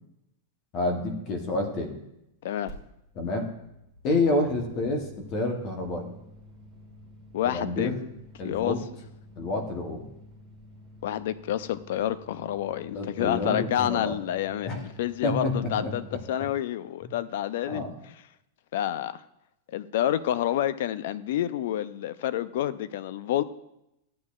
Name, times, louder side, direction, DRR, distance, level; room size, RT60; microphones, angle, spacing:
voice 1, 0.7-2.0 3.2-3.5 4.0-6.1 7.5-8.0 8.4-8.8 9.4-10.1 12.9-14.1 14.6-14.8 15.2-16.2 17.0-17.1 17.7-17.9, left 2 dB, 30° left, 4 dB, 1.0 m, -28 dB
voice 2, 2.4-2.7 7.3-7.9 8.4-8.8 11.0-17.8 18.7-19.2 19.7-23.4, left 11 dB, 60° left, 16 dB, 0.4 m, -28 dB
sound 1, 2.7-2.8 3.0-16.1, equal, 5° left, 2.1 m, -50 dB
14.0 x 8.5 x 2.4 m, 0.84 s
supercardioid pair, 170°, 0 cm